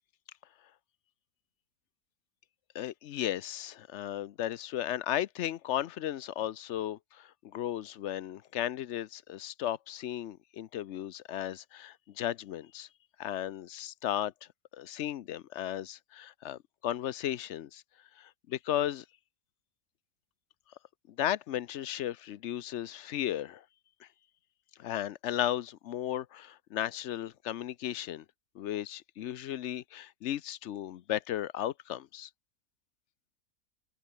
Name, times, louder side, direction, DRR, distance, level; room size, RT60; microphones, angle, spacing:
voice 1, 2.7-12.9 13.2-14.3 14.7-17.8 18.2-19.0 21.1-23.6 24.0-24.1 24.8-28.2 28.5-32.3, left 11 dB, 60° left, 0.8 m, -35 dB
open air
omnidirectional pair, 1.6 m